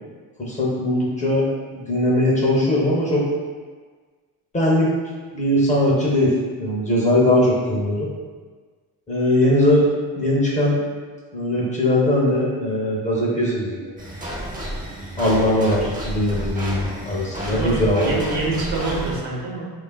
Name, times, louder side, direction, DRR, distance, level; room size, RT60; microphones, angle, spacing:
voice 1, 0.4-3.3 4.5-4.9 5.3-6.3 6.6-8.1 9.1-10.8 11.3-13.9 15.2-18.1, left 1 dB, 20° left, -4 dB, 0.6 m, -20 dB
sound 1, 14.0-19.2, equal, 20° right, 0.6 m, -30 dB
voice 2, 17.5-19.7, right 3 dB, 85° right, -3 dB, 0.8 m, -26 dB
3.1 x 2.4 x 2.2 m, 1.5 s
cardioid pair, 105°, 38 cm